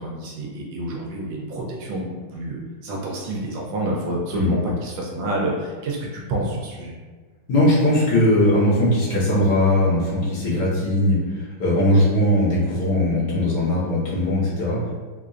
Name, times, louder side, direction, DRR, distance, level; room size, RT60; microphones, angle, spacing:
voice 1, 0.0-6.9, right 1 dB, 75° right, -2 dB, 1.2 m, -28 dB
voice 2, 7.5-14.8, left 1 dB, 75° left, -8 dB, 1.9 m, -19 dB
4.4 x 2.5 x 2.4 m, 1.4 s
omnidirectional pair, 2.2 m